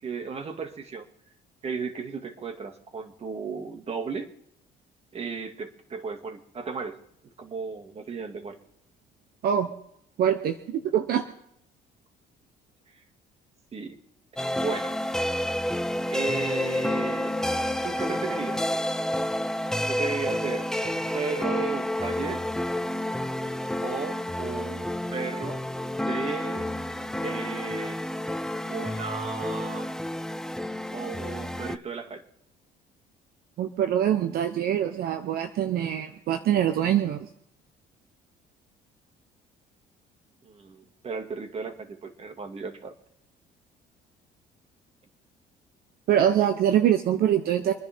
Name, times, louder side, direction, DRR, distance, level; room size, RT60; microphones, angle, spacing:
voice 1, 0.0-1.0 1.6-4.3 5.1-7.0 7.4-8.6 13.7-14.0 14.6-15.0 16.1-17.4 17.8-18.9 19.9-22.4 23.8-25.6 26.0-26.7 27.2-28.0 28.7-29.9 30.9-32.2 40.4-42.9, right 5 dB, 35° right, 5 dB, 2.4 m, -35 dB
voice 2, 10.2-11.2 33.6-37.3 46.1-47.7, right 10 dB, 65° right, 7 dB, 1.1 m, -24 dB
sound 1, 14.4-31.8, left 1 dB, 5° left, 0.6 m, -30 dB
26.0 x 10.0 x 3.7 m, 0.74 s
cardioid pair, 110°, 17 cm